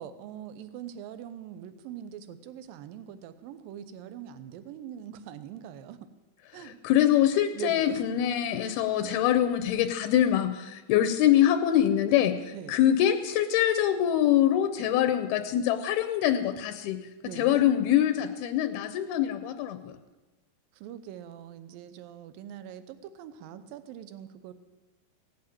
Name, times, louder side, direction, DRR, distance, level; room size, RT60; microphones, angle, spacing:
voice 1, 0.0-6.1 6.5-6.8 7.5-8.0 12.5-12.8 17.2-17.7 20.7-24.5, right 10 dB, 75° right, 12 dB, 2.4 m, -42 dB
voice 2, 6.6-17.1 17.3-19.9, left 11 dB, 80° left, 9 dB, 2.6 m, -24 dB
17.0 x 8.7 x 9.0 m, 1.2 s
omnidirectional pair, 4.6 m